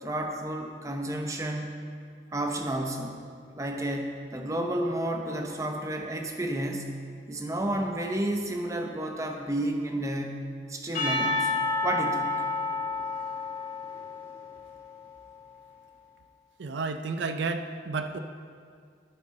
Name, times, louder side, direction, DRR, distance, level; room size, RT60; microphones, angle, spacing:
voice 1, 0.0-1.8 2.3-3.2 3.5-7.0 7.3-11.5 11.8-12.4, right 1 dB, 15° right, 3 dB, 0.7 m, -31 dB
Percussion / Church bell, 10.9-15.1, left 3 dB, 50° left, 2.8 m, -30 dB
voice 2, 16.6-18.2, right 4 dB, 70° right, 8 dB, 0.4 m, -31 dB
12.5 x 7.5 x 3.8 m, 2.2 s
head